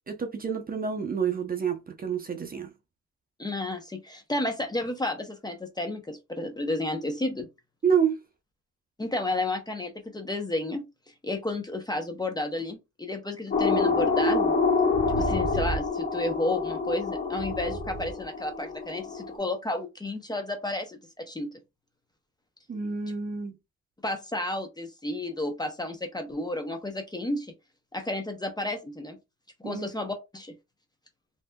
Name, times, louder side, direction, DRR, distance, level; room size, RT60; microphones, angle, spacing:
voice 1, 0.1-2.7 7.8-8.2 22.7-23.6 29.6-29.9, right 6 dB, 30° right, 0.7 m, -28 dB
voice 2, 3.4-7.5 9.0-10.9 11.2-14.5 15.2-21.5 24.0-27.5 27.9-29.2 29.6-30.5, left 2 dB, 15° left, 0.7 m, -32 dB
sound 1, 13.5-19.4, left 3 dB, 30° left, 1.7 m, -26 dB
3.3 x 2.7 x 2.2 m
cardioid pair, 90°, 30 cm